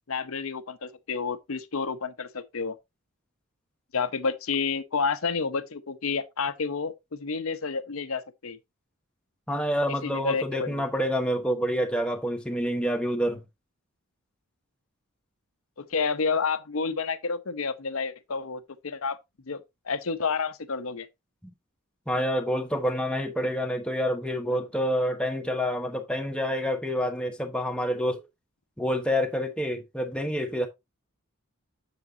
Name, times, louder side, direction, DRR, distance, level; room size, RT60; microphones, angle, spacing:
voice 1, 0.1-2.7 3.9-8.6 10.0-10.8 15.8-19.2 19.5-21.1, left 5 dB, 70° left, 0.8 m, -30 dB
voice 2, 9.5-13.4 22.1-28.2 28.8-30.7, equal, 5° left, 1.1 m, -27 dB
7.4 x 7.3 x 2.7 m
head